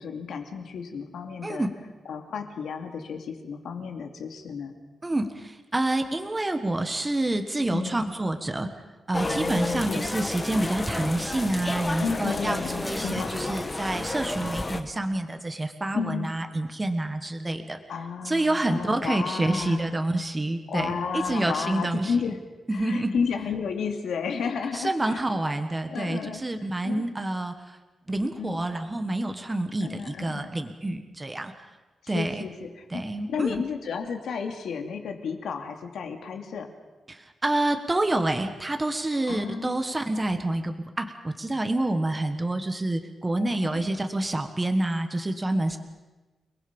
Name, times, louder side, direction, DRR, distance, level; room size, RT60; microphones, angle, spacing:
voice 1, 0.0-1.7 2.1-4.7 7.7-8.0 9.2-10.1 12.0-13.5 15.9-16.3 17.9-20.0 20.7-22.4 22.7-25.2 25.9-26.4 26.8-27.0 28.4-28.6 29.8-30.5 32.1-33.0 33.3-36.7 39.3-39.8 43.4-43.9, left 6 dB, 85° left, 4 dB, 2.6 m, -32 dB
voice 2, 1.4-1.7 5.0-8.7 9.1-17.8 18.2-22.1 22.7-23.2 24.7-27.8 28.1-31.5 32.1-32.4 32.9-33.6 37.1-45.8, right 1 dB, 15° right, 6 dB, 1.4 m, -28 dB
sound 1, 9.1-14.8, left 2 dB, 20° left, 1.3 m, -31 dB
30.0 x 20.5 x 5.4 m, 1.2 s
wide cardioid pair, 170°, 0 cm